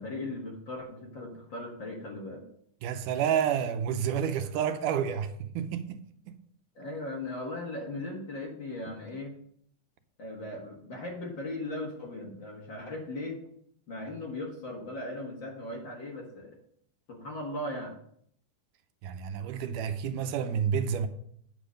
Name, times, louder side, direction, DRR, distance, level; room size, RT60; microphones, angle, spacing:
voice 1, 0.0-2.4 6.8-9.3 10.2-13.4 13.9-16.6 17.1-17.9, left 2 dB, 45° left, 1.8 m, -38 dB
voice 2, 2.8-6.0 6.3-6.4 19.0-21.1, right 8 dB, 90° right, 2.2 m, -29 dB
9.6 x 7.0 x 5.1 m
omnidirectional pair, 3.6 m